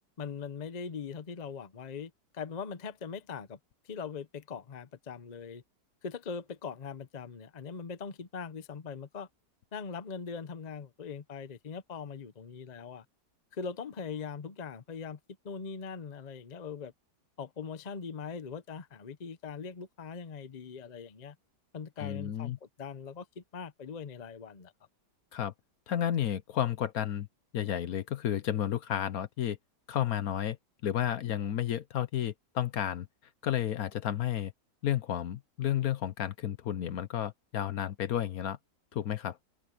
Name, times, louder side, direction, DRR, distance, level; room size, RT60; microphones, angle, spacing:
voice 1, 0.2-3.6 3.8-5.6 6.0-9.3 9.7-13.0 13.5-15.2 15.4-16.9 17.4-21.3 21.7-24.7, left 6 dB, 35° left, 0.7 m, -41 dB
voice 2, 22.0-22.6 25.3-25.5 25.9-27.3 27.5-29.6 29.9-30.6 30.8-33.1 33.4-34.5 34.8-38.6 38.9-39.4, left 10 dB, 65° left, 1.2 m, -32 dB
omnidirectional pair, 1.8 m